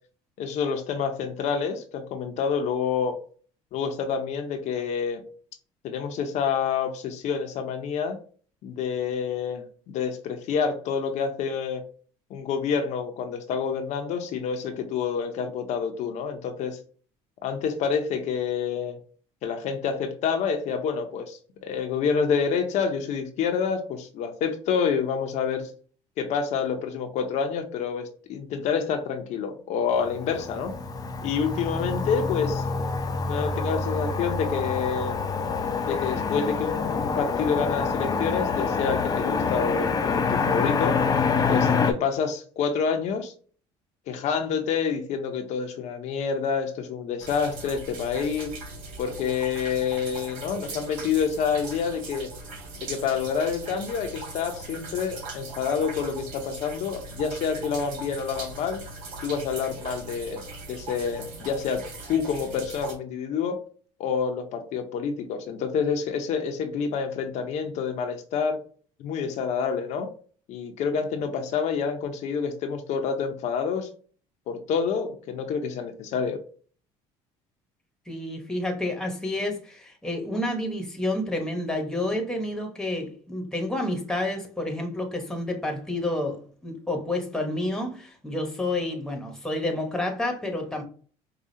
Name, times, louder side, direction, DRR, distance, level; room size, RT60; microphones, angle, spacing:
voice 1, 0.4-3.2 3.7-5.2 5.8-8.2 8.6-11.8 12.3-16.8 17.4-19.0 19.4-25.7 26.2-30.7 31.2-32.6 33.2-35.2 35.7-41.0 41.5-43.3 44.1-48.5 49.0-52.3 52.8-58.8 59.2-60.4 60.7-63.6 64.0-68.6 69.0-70.1 70.5-73.9 74.5-76.4, left 6 dB, 60° left, 0.7 m, -28 dB
Motor vehicle (road), 30.0-41.9, left 5 dB, 25° left, 0.5 m, -26 dB
sound 1, 47.2-62.9, right 3 dB, 75° right, 1.9 m, -40 dB
voice 2, 78.1-90.8, left 1 dB, 5° left, 1.0 m, -29 dB
4.9 x 2.3 x 2.7 m
cardioid pair, 115°, 14 cm